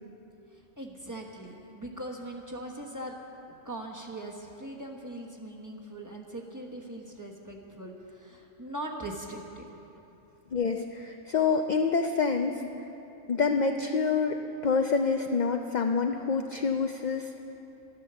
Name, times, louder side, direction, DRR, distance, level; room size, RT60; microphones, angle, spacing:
voice 1, 0.5-3.2 3.5-9.7, right 1 dB, 15° right, 0 dB, 1.2 m, -40 dB
voice 2, 10.5-12.6 13.3-17.4, left 5 dB, 60° left, 5 dB, 0.4 m, -27 dB
12.5 x 11.0 x 6.9 m, 2.9 s
omnidirectional pair, 1.4 m